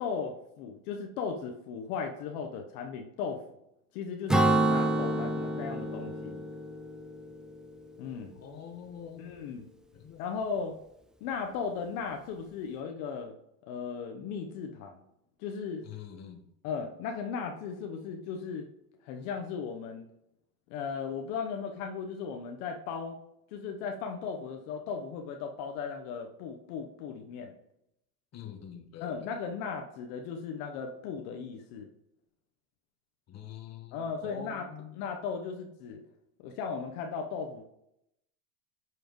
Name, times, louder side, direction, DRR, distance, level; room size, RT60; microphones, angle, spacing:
voice 1, 0.0-3.4 3.9-6.4 8.0-8.3 9.2-9.6 10.2-10.7 11.2-13.3 13.7-15.0 15.4-15.8 16.6-18.7 19.0-20.1 20.7-23.2 23.5-27.5 29.0-31.9 33.9-34.6 34.9-36.0 36.4-37.6, left 6 dB, 65° left, 3 dB, 1.1 m, -36 dB
Acoustic guitar / Strum, 4.3-7.9, right 2 dB, ahead, 0.3 m, -28 dB
voice 2, 8.3-9.3 9.9-10.2 15.8-16.4 28.3-29.3 33.3-35.0, left 8 dB, 35° left, 5 dB, 1.4 m, -45 dB
9.4 x 4.9 x 3.1 m, 0.80 s
hypercardioid pair, 95°, 45 cm